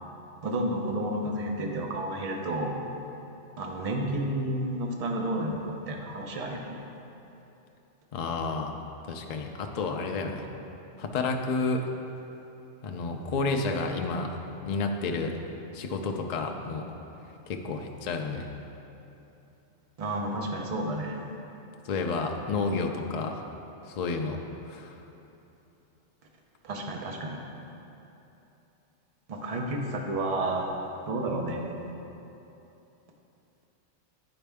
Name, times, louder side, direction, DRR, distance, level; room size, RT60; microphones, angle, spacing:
voice 1, 0.4-2.8 3.6-6.8 20.0-21.3 26.6-27.4 29.3-30.7 31.1-31.7, right 1 dB, 40° right, 1 dB, 0.6 m, -31 dB
voice 2, 8.1-8.8 9.1-10.5 11.0-11.8 12.8-14.4 14.7-15.4 15.7-16.9 17.5-18.5 21.8-23.4 23.9-24.4 24.7-25.0, left 3 dB, 70° left, 3 dB, 0.3 m, -30 dB
10.0 x 4.2 x 3.5 m, 3.0 s
omnidirectional pair, 1.3 m